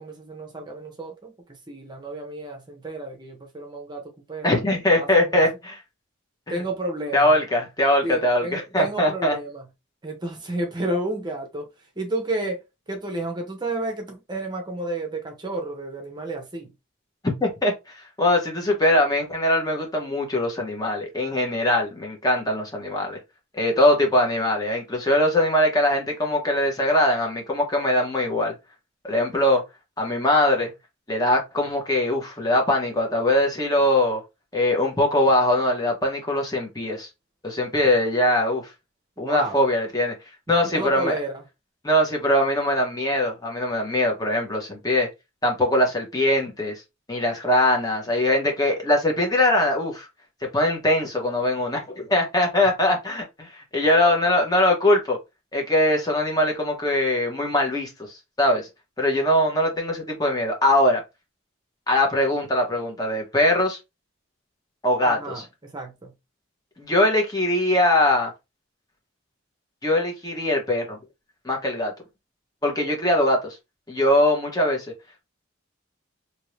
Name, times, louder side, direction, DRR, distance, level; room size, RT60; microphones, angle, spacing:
voice 1, 0.0-4.6 5.0-5.4 6.5-7.3 8.0-9.6 10.0-11.7 12.0-16.7 39.2-39.6 40.5-41.4 54.0-54.2 65.0-66.1, right 2 dB, 20° right, 0.8 m, -31 dB
voice 2, 4.4-5.8 7.1-9.4 17.2-23.2 23.5-28.5 29.0-29.6 30.0-30.7 31.1-34.2 34.5-37.1 37.4-38.6 39.2-40.1 40.5-41.1 41.8-45.1 45.4-46.8 47.1-50.1 50.5-55.2 55.5-57.9 58.4-58.7 59.0-61.0 61.9-63.8 64.8-65.2 66.8-68.3 69.8-71.0 71.4-71.9 72.6-73.6 73.9-74.9, left 1 dB, 20° left, 1.0 m, -21 dB
2.8 x 2.7 x 3.2 m
head